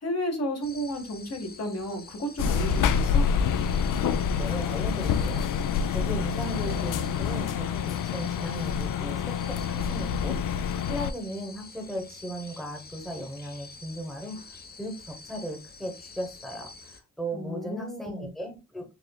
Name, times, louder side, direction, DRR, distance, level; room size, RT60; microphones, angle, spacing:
voice 1, 0.0-3.3 17.3-18.3, equal, 55° left, 3 dB, 1.5 m, -33 dB
sound 1, 0.6-17.0, left 4 dB, 30° left, 0.7 m, -47 dB
sound 2, 2.4-11.1, left 7 dB, 85° left, 0.5 m, -27 dB
voice 2, 4.4-14.4 14.8-18.8, right 1 dB, ahead, 3 dB, 0.9 m, -37 dB
6.8 x 3.1 x 2.2 m, 0.28 s
wide cardioid pair, 115°, 31 cm